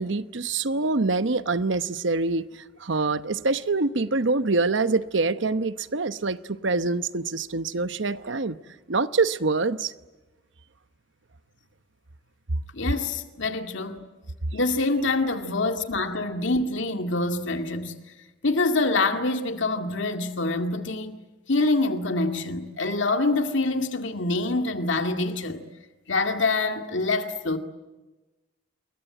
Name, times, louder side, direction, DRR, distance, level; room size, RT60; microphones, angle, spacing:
voice 1, 0.0-8.6 8.9-9.9, right 3 dB, 70° right, 0.9 m, -25 dB
voice 2, 12.7-14.0 14.5-17.9 18.4-21.2 21.5-25.6 26.1-27.6, left 2 dB, 70° left, 2.2 m, -25 dB
28.0 x 22.5 x 9.0 m
head